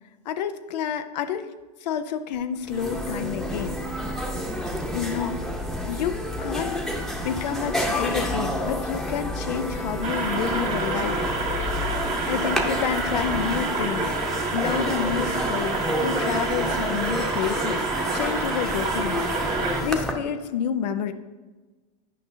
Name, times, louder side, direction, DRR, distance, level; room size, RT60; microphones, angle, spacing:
voice 1, 0.3-1.5 1.8-3.8 4.9-5.4 5.8-6.8 7.2-11.2 12.2-14.2 14.5-17.8 18.1-21.1, left 8 dB, 85° left, 10 dB, 0.5 m, -29 dB
sound 1, 2.4-2.5 2.6-20.1, left 1 dB, ahead, 0.9 m, -29 dB
sound 2, 10.0-19.8, right 3 dB, 35° right, 1.6 m, -28 dB
9.2 x 5.4 x 2.7 m, 1.2 s
hypercardioid pair, 95°, 21 cm